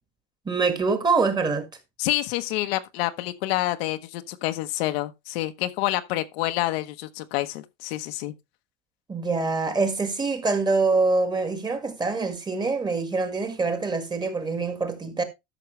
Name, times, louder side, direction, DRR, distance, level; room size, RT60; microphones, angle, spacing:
voice 1, 0.5-1.7 9.1-15.2, right 4 dB, 15° right, 1.8 m, -25 dB
voice 2, 2.0-8.3, left 16 dB, 75° left, 1.1 m, -28 dB
13.0 x 6.4 x 3.2 m
supercardioid pair, 145°, 31 cm